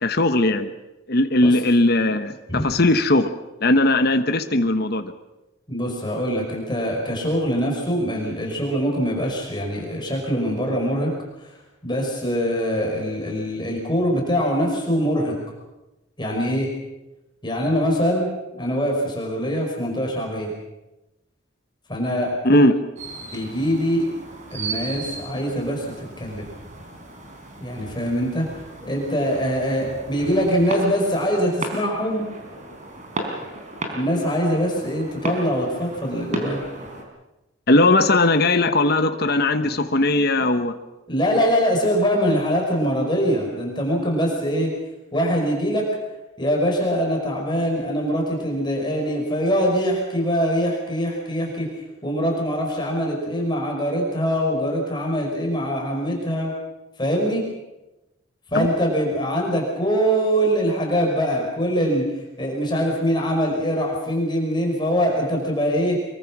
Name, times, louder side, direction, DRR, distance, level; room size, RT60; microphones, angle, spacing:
voice 1, 0.0-0.7 1.1-3.3 3.6-5.1 22.4-22.7 37.7-40.7 58.5-58.7, left 2 dB, 50° left, 8 dB, 1.2 m, -18 dB
voice 2, 5.7-11.1 11.4-11.5 11.8-15.4 16.2-16.7 17.4-18.3 18.6-20.5 21.9-22.6 23.3-24.0 24.5-26.4 27.6-28.5 28.8-32.3 33.9-36.6 41.1-44.7 45.1-45.9 46.4-51.7 52.0-56.5 57.0-57.4 58.5-62.1 62.4-66.0, equal, 20° left, 0 dB, 5.2 m, -23 dB
sound 1, 23.0-37.0, right 2 dB, 35° right, 4.3 m, -35 dB
24.5 x 23.5 x 6.1 m, 0.99 s
head